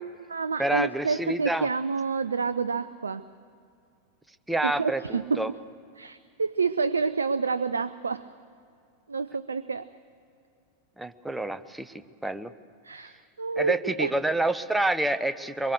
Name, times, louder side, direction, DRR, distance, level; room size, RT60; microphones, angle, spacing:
voice 1, 0.0-3.3 4.6-5.6 6.0-8.3 9.1-9.9 12.8-14.1, right 4 dB, 75° right, 12 dB, 0.5 m, -29 dB
voice 2, 0.6-1.7 4.5-5.5 11.0-11.9 12.2-12.5 13.6-15.7, right 1 dB, 5° right, 11 dB, 0.8 m, -28 dB
24.0 x 23.0 x 6.6 m, 2.4 s
figure-of-eight pair, 90°, 0 cm